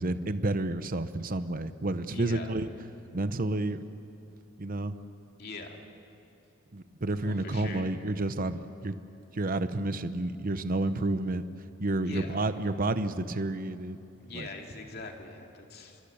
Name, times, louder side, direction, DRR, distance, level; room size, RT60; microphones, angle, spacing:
voice 1, 0.0-2.7 3.1-3.8 4.6-4.9 6.7-9.0 9.3-11.4 11.8-14.0 14.3-14.5, right 2 dB, 45° right, 11 dB, 0.8 m, -30 dB
voice 2, 2.1-2.5 5.4-5.8 7.2-7.9 12.1-12.4 14.2-16.0, left 3 dB, 50° left, 2 dB, 2.6 m, -42 dB
26.5 x 24.0 x 7.1 m, 2.8 s
head